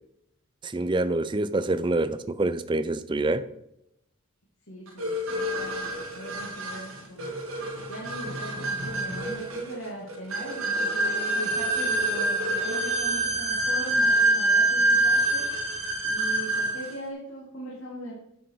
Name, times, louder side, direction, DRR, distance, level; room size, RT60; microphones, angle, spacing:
voice 1, 0.6-3.4, right 2 dB, 20° right, 13 dB, 0.4 m, -26 dB
voice 2, 4.7-5.9 6.1-7.3 7.9-15.5 16.0-18.1, right 1 dB, 70° left, -5 dB, 2.2 m, -39 dB
sound 1, 5.0-16.9, right 2 dB, 80° right, 1.5 m, -26 dB
9.3 x 6.4 x 4.6 m, 0.80 s
head